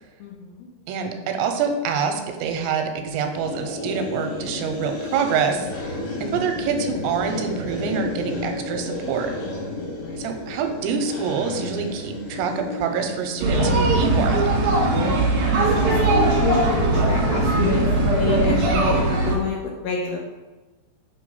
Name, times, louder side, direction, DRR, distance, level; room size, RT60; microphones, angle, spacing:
voice 1, 0.2-0.7 10.0-10.3 15.7-20.2, left 5 dB, 75° left, -2 dB, 2.3 m, -29 dB
voice 2, 0.9-9.3 10.2-14.5, right 6 dB, 85° right, 5 dB, 2.9 m, -26 dB
sound 1, 3.3-13.8, left 2 dB, 55° left, 3.7 m, -32 dB
sound 2, 13.4-19.4, right 2 dB, 70° right, 1.8 m, -19 dB
7.5 x 3.2 x 5.5 m, 1.2 s
omnidirectional pair, 5.1 m